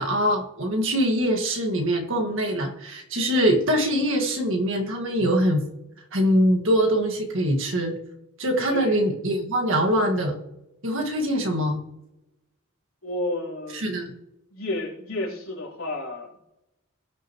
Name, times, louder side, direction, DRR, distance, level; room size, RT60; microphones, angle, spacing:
voice 1, 0.0-5.6 6.1-8.0 8.4-10.4 10.8-11.8 13.7-14.1, equal, 65° right, 2 dB, 1.8 m, -23 dB
voice 2, 8.7-9.0 13.0-13.8 14.5-16.4, left 1 dB, 75° left, -4 dB, 3.8 m, -31 dB
18.0 x 6.3 x 3.0 m, 0.91 s
head